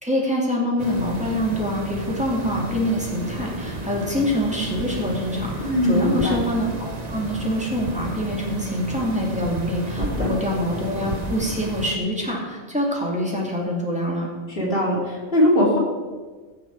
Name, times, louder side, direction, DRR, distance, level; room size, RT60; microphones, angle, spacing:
voice 1, 0.0-14.3, left 1 dB, 5° right, -3 dB, 2.4 m, -25 dB
sound 1, 0.8-12.0, right 2 dB, 40° right, 1.0 m, -32 dB
voice 2, 5.6-6.4 10.0-10.3 14.5-15.8, left 1 dB, 50° left, -4 dB, 3.0 m, -20 dB
16.5 x 6.7 x 4.6 m, 1.4 s
omnidirectional pair, 1.2 m